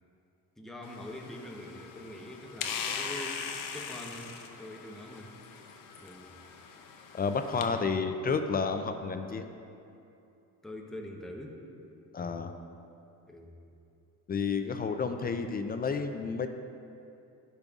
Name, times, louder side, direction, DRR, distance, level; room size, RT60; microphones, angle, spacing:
voice 1, 0.6-3.5 3.7-4.3 4.6-6.4 7.7-7.9 10.6-11.6 13.3-13.5, left 1 dB, ahead, 0 dB, 0.8 m, -44 dB
sound 1, 0.8-7.7, left 6 dB, 70° left, 0.7 m, -40 dB
voice 2, 7.1-9.5 12.1-12.5 14.3-16.5, left 5 dB, 30° left, 7 dB, 0.3 m, -31 dB
11.5 x 5.3 x 2.4 m, 2.7 s
cardioid pair, 105°, 35 cm